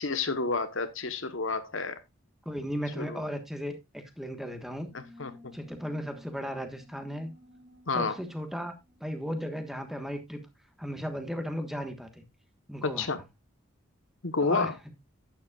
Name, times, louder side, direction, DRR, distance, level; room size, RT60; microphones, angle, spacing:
voice 1, 0.0-2.0 3.0-3.2 4.9-5.5 7.9-8.2 12.8-13.2 14.2-14.7, left 4 dB, 70° left, 1.1 m, -30 dB
voice 2, 2.4-4.9 5.5-7.3 7.9-8.7 9.0-10.4 10.8-12.2 12.7-13.1 14.4-14.7, equal, ahead, 1.3 m, -35 dB
sound 1, 4.9-10.1, left 2 dB, 25° right, 3.9 m, -55 dB
11.5 x 9.5 x 2.4 m
head